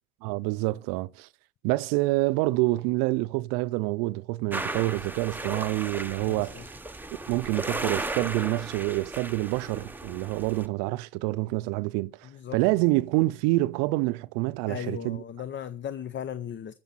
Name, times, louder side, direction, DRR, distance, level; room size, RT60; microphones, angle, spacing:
voice 1, 0.2-1.3 1.6-6.7 7.3-15.2, right 21 dB, 85° right, 0.6 m, -27 dB
sound 1, 4.5-10.7, right 2 dB, 5° right, 0.9 m, -35 dB
voice 2, 6.2-6.7 12.2-12.6 14.7-16.7, left 9 dB, 35° left, 0.7 m, -37 dB
15.5 x 6.9 x 5.7 m
supercardioid pair, 100°, 33 cm